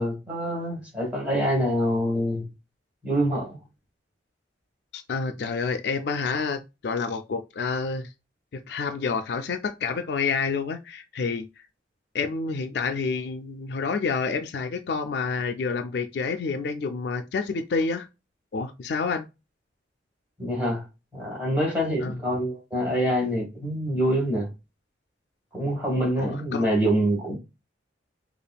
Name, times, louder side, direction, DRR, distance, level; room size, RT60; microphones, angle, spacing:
voice 1, 0.0-2.4 3.0-3.6 20.4-20.8 21.1-24.5 25.5-27.4, equal, 10° right, 1.7 m, -25 dB
voice 2, 4.9-8.1 8.5-11.5 12.1-18.1 18.5-19.3 22.0-22.1 26.2-26.7, left 4 dB, 60° left, 0.3 m, -28 dB
5.1 x 2.4 x 2.3 m
head